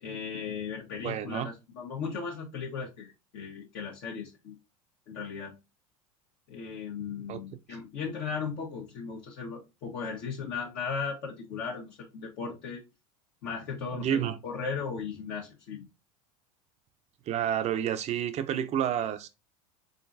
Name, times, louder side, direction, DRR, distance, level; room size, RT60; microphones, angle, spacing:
voice 1, 0.0-4.5 5.1-5.5 6.5-12.8 13.4-15.8, left 5 dB, 55° left, 1.2 m, -37 dB
voice 2, 1.0-1.5 7.3-7.4 13.9-14.4 17.3-19.3, right 10 dB, 40° right, 0.6 m, -29 dB
3.9 x 3.8 x 2.6 m
hypercardioid pair, 90°, 18 cm